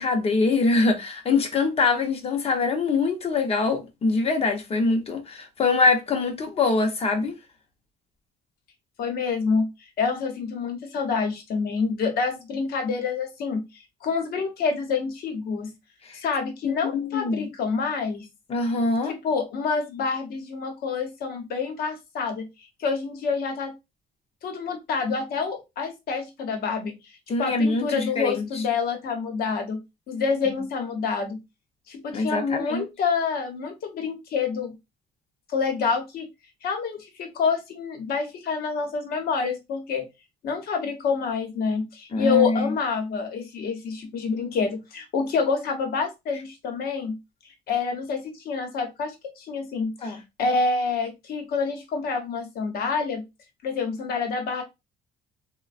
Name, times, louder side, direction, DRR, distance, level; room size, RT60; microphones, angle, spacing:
voice 1, 0.0-7.3 16.1-16.2 16.6-17.5 18.5-19.1 27.3-28.5 30.5-30.6 32.1-32.8 42.1-42.7 50.0-50.2, left 3 dB, 35° left, 0.7 m, -24 dB
voice 2, 9.0-9.7 10.0-13.6 14.0-15.7 16.1-18.3 19.1-22.5 22.8-23.7 24.4-27.0 27.4-29.8 30.1-31.4 31.9-34.7 35.5-36.3 36.6-40.1 40.4-47.2 47.7-53.2 53.6-54.6, left 5 dB, 65° left, 0.9 m, -27 dB
3.2 x 2.2 x 2.4 m
cardioid pair, 110°, 17 cm